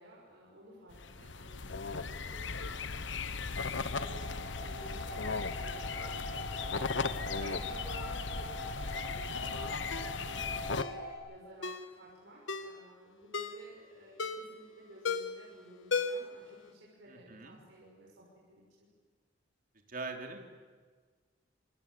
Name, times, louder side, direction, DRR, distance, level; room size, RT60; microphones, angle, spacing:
voice 1, 0.0-3.3 3.6-18.9, right 1 dB, 70° right, -4 dB, 6.3 m, -55 dB
sound 1, 0.9-10.8, left 4 dB, 70° left, 1.1 m, -37 dB
sound 2, 3.8-11.1, left 1 dB, 50° left, 7.8 m, -43 dB
Ringtone, 9.9-10.1 10.8-11.0 11.6-11.9 12.5-12.8 13.3-13.6 14.2-14.6 15.0-15.4 15.9-16.4 16.7-16.8, left 4 dB, 85° left, 1.8 m, -35 dB
voice 2, 17.1-17.6 19.9-20.4, right 3 dB, 45° right, 3 dB, 3.5 m, -43 dB
27.5 x 25.0 x 8.6 m, 1.5 s
head